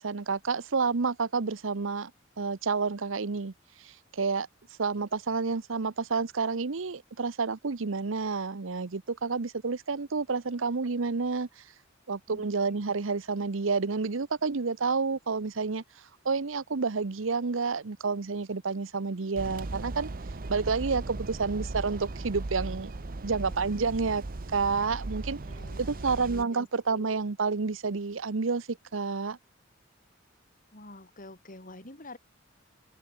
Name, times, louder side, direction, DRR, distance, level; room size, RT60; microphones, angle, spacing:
voice 1, 0.0-2.1 2.4-3.5 3.8-4.5 4.8-11.6 12.1-15.8 16.2-20.1 20.5-22.9 23.2-24.2 24.5-25.4 25.8-29.4, right 4 dB, 90° right, 0.8 m, -29 dB
sound 1, 19.4-26.4, right 2 dB, 45° right, 0.8 m, -37 dB
voice 2, 23.4-23.8 25.5-27.2 30.7-32.2, left 2 dB, 45° left, 7.1 m, -48 dB
head